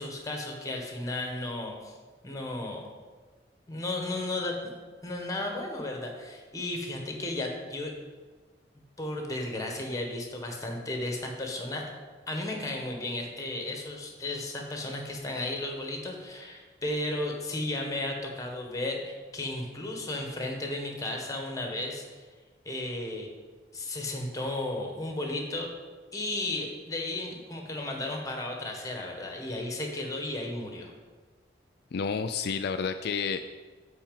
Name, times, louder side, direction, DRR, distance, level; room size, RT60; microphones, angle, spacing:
voice 1, 0.0-1.9 2.2-2.8 3.7-4.7 5.0-7.9 9.0-11.8 12.3-22.2 22.6-23.3 23.7-25.7 26.1-30.9, left 2 dB, 20° left, 2 dB, 1.6 m, -34 dB
voice 2, 31.9-33.4, left 5 dB, 65° left, 8 dB, 0.4 m, -30 dB
10.0 x 4.3 x 7.5 m, 1.4 s
head